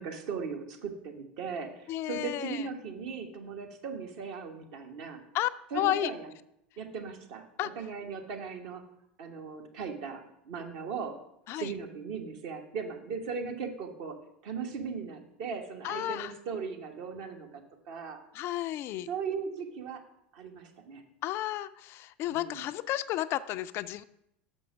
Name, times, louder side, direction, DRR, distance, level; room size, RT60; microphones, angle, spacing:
voice 1, 0.0-5.2 5.7-6.3 6.8-8.8 9.2-11.2 11.5-17.6 17.9-18.2 19.1-20.1 20.3-21.0 22.2-22.6, right 5 dB, 60° right, 3 dB, 1.2 m, -38 dB
voice 2, 1.9-2.6 5.3-5.5 5.8-6.1 7.6-7.7 11.5-11.7 15.8-16.3 18.3-19.1 21.2-24.0, left 14 dB, 45° left, 13 dB, 0.3 m, -32 dB
6.4 x 6.1 x 5.9 m, 0.77 s
figure-of-eight pair, 75°, 6 cm